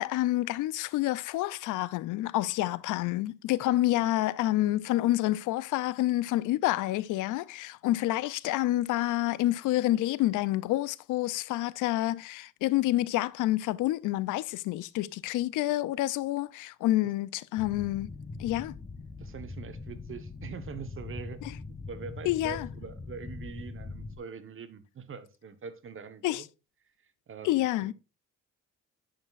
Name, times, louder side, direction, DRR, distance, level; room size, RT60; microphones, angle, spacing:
voice 1, 0.0-18.1 18.4-18.7 22.3-22.7 26.2-26.4 27.4-27.9, left 16 dB, 85° left, 0.5 m, -28 dB
sound 1, 17.6-24.2, left 3 dB, 20° left, 0.9 m, -42 dB
voice 2, 19.2-26.5 27.0-27.9, right 6 dB, 45° right, 1.1 m, -44 dB
10.5 x 5.8 x 2.4 m
cardioid pair, 90°, 30 cm